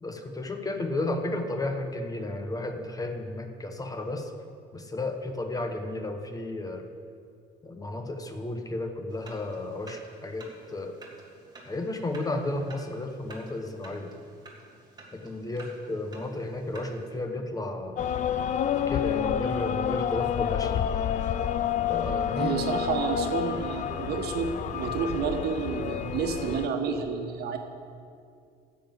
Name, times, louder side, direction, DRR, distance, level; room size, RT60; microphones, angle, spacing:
voice 1, 0.0-4.3 4.7-6.8 7.6-10.9 11.6-14.1 15.1-18.1 18.7-20.8 21.9-22.5, left 2 dB, 20° left, 6 dB, 1.0 m, -33 dB
sound 1, 9.1-17.2, right 2 dB, 25° right, 2.0 m, -51 dB
sound 2, 18.0-26.7, left 9 dB, 45° left, 0.5 m, -29 dB
voice 2, 22.4-27.6, right 5 dB, 70° right, 5 dB, 1.3 m, -30 dB
10.0 x 7.1 x 7.8 m, 2.3 s
cardioid pair, 110°, 17 cm